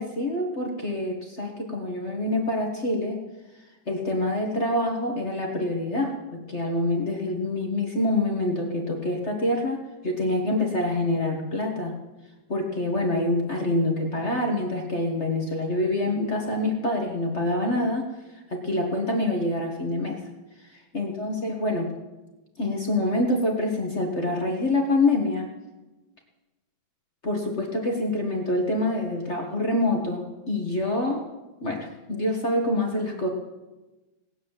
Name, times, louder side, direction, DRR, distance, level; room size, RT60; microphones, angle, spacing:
voice 1, 0.0-3.2 3.9-11.9 12.5-18.1 18.5-20.2 20.7-21.9 22.6-25.5 27.2-31.3 31.6-33.3, left 1 dB, 35° left, 1 dB, 1.9 m, -26 dB
18.0 x 9.6 x 7.4 m, 1.1 s
omnidirectional pair, 2.1 m